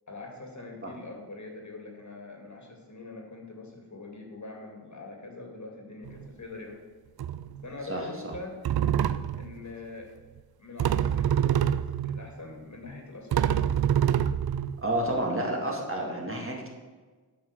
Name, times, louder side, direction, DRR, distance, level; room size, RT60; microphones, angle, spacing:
voice 1, 0.1-6.7 7.6-8.6 9.4-10.1 10.6-13.5, left 3 dB, 45° left, 1 dB, 2.3 m, -43 dB
sound 1, 6.1-6.3 7.2-7.6 8.3-8.4 8.6-9.5 10.8-12.2 12.9-13.0 13.3-15.2, right 9 dB, 65° right, 0.5 m, -26 dB
voice 2, 7.9-8.3 14.8-16.7, right 1 dB, 30° right, 0 dB, 2.0 m, -30 dB
8.7 x 5.9 x 6.6 m, 1.4 s
wide cardioid pair, 70°, 40 cm